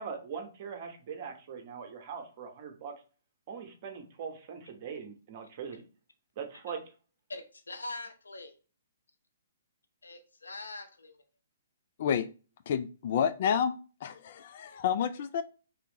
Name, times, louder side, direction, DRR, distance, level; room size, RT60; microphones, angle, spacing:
voice 1, 0.0-3.0 3.5-5.8 6.4-6.9, right 6 dB, 40° right, 1.1 m, -41 dB
voice 2, 7.3-8.5 10.0-11.2, left 2 dB, 80° left, 0.8 m, -42 dB
voice 3, 12.7-13.8 14.0-15.4, left 8 dB, 50° left, 0.3 m, -29 dB
3.7 x 3.4 x 2.9 m
figure-of-eight pair, 125°, 0 cm